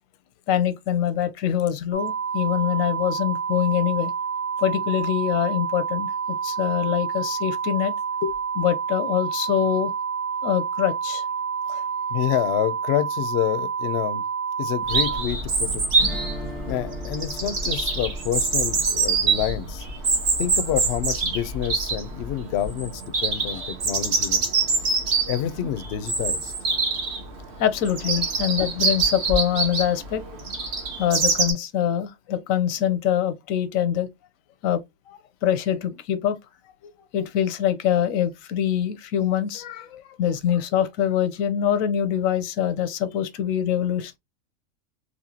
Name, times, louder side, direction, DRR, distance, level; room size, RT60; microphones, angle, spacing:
voice 1, 0.5-4.1 4.6-7.9 8.2-9.9 10.4-11.2 11.7-11.8 27.6-30.2 31.0-34.1 34.6-34.8 35.1-36.4 37.1-44.2, left 10 dB, 90° left, 1.0 m, -24 dB
sound 1, 1.9-15.2, right 6 dB, 5° right, 0.9 m, -28 dB
voice 2, 12.1-14.2 14.6-15.8 16.6-19.9 20.4-24.4 25.3-26.5, left 11 dB, 65° left, 0.7 m, -28 dB
Chirp tweet, 14.9-31.5, right 4 dB, 55° right, 1.2 m, -25 dB
sound 2, 16.0-20.9, equal, 25° right, 1.4 m, -42 dB
4.3 x 2.5 x 2.7 m
omnidirectional pair, 1.4 m